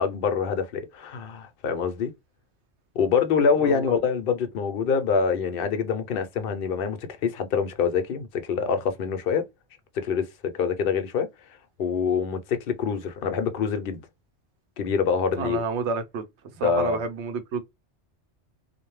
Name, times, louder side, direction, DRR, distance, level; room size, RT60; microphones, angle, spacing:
voice 1, 0.0-2.1 2.9-9.4 9.9-11.3 11.8-14.0 14.8-15.6 16.6-17.0, left 6 dB, 60° left, 0.7 m, -25 dB
voice 2, 15.3-16.2 16.6-17.6, right 4 dB, 80° right, 0.9 m, -29 dB
2.5 x 2.1 x 3.0 m
omnidirectional pair, 1.2 m